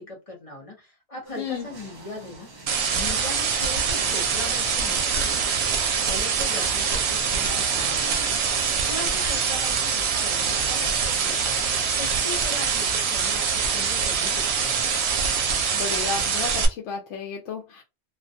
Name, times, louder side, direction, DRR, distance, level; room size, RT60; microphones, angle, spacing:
voice 1, 0.0-2.5 2.9-5.6 5.8-14.8, left 2 dB, 35° left, 0.7 m, -39 dB
sound 1, 1.3-11.0, right 3 dB, 45° right, 1.0 m, -44 dB
sound 2, 2.7-16.7, right 6 dB, 70° right, 0.8 m, -24 dB
voice 2, 15.7-17.8, left 5 dB, 80° left, 0.9 m, -32 dB
2.4 x 2.2 x 2.6 m
omnidirectional pair, 1.2 m